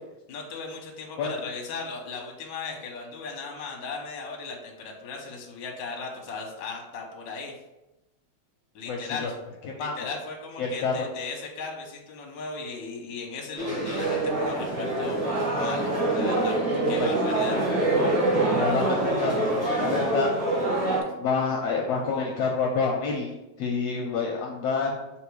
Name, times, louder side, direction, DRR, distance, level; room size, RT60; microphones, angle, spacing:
voice 1, 0.3-7.5 8.7-9.3 9.8-15.2 15.6-16.6 16.9-17.6, left 4 dB, 55° left, 0 dB, 1.4 m, -37 dB
voice 2, 8.9-9.3 9.8-10.1 10.6-10.9 17.0-17.1 18.5-20.6 21.2-23.3 23.6-25.0, left 4 dB, 70° left, 0 dB, 1.6 m, -28 dB
sound 1, 13.6-21.0, right 2 dB, 40° right, 2.6 m, -25 dB
5.8 x 3.6 x 4.7 m, 0.96 s
omnidirectional pair, 3.3 m